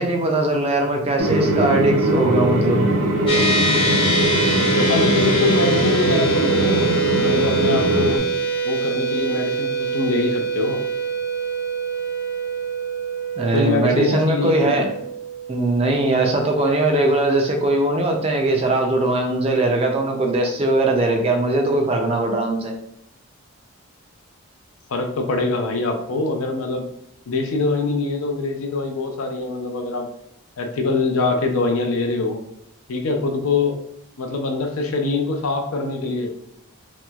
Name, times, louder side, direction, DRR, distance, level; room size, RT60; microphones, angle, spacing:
voice 1, 0.0-2.9 13.4-14.9 15.5-22.7, right 2 dB, 25° right, 2 dB, 0.4 m, -20 dB
sound 1, 1.2-8.2, right 1 dB, 75° right, 0.6 m, -21 dB
sound 2, 3.3-16.9, right 3 dB, 25° left, 0.5 m, -24 dB
voice 2, 4.8-8.2 8.6-10.8 13.5-14.9 24.9-26.9 27.3-30.1 30.6-32.4 32.9-33.8 34.2-36.3, left 3 dB, 80° left, 4 dB, 0.5 m, -23 dB
3.0 x 2.9 x 2.3 m, 0.77 s
head